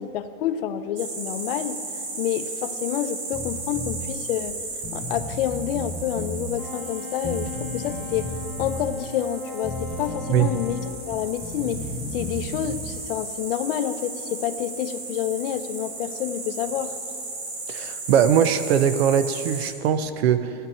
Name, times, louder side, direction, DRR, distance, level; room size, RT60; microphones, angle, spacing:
voice 1, 0.0-1.8 2.2-4.6 4.9-8.3 8.6-16.9, left 10 dB, 65° left, 10 dB, 0.7 m, -28 dB
sound 1, 1.0-19.7, right 3 dB, 50° right, 2.0 m, -35 dB
Bass guitar, 3.3-4.0 4.5-4.6 4.8-6.5 7.2-8.9 9.6-10.8 11.0-12.9, left 1 dB, ahead, 1.3 m, -34 dB
Wind instrument woodwind instrument, 6.5-11.0, left 4 dB, 20° right, 2.7 m, -38 dB
voice 2, 17.7-20.5, right 9 dB, 85° right, 12 dB, 0.8 m, -21 dB
16.0 x 10.0 x 4.4 m, 2.5 s
supercardioid pair, 165°, 30 cm